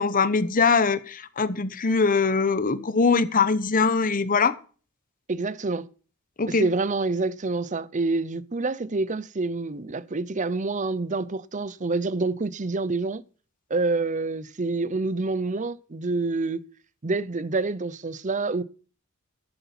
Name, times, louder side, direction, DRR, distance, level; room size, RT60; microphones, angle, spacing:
voice 1, 0.0-4.5 6.4-6.7, left 4 dB, 40° left, 1.0 m, -22 dB
voice 2, 5.3-5.9 6.5-13.2 13.7-16.6 17.0-18.6, right 3 dB, 35° right, 0.7 m, -27 dB
13.0 x 8.0 x 5.8 m
head